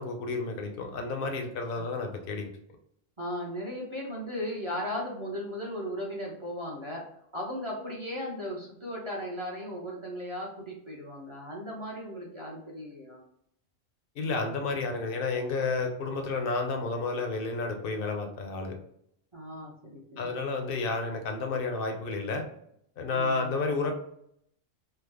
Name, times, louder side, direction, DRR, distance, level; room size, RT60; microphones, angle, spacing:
voice 1, 0.0-2.5 14.2-18.7 20.2-22.4 23.0-23.9, left 3 dB, 55° left, 4 dB, 0.7 m, -31 dB
voice 2, 3.2-7.0 7.3-13.2 19.3-20.4 23.1-23.6, equal, 30° right, -3 dB, 0.6 m, -37 dB
3.3 x 2.0 x 3.3 m, 0.72 s
omnidirectional pair, 1.2 m